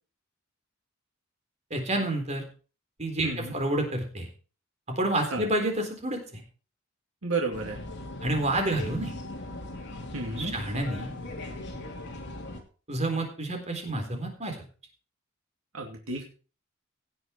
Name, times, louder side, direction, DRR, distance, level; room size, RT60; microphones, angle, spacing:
voice 1, 1.7-2.4 3.0-4.3 4.9-6.4 8.2-9.1 10.4-11.1 12.9-14.6, right 1 dB, 35° right, 4 dB, 3.9 m, -29 dB
voice 2, 3.2-3.5 5.3-5.4 7.2-7.8 10.1-10.6 15.7-16.2, right 3 dB, 75° right, 1 dB, 2.5 m, -32 dB
sound 1, 7.5-12.6, left 2 dB, 55° left, 2.8 m, -39 dB
17.5 x 7.9 x 4.5 m, 0.37 s
head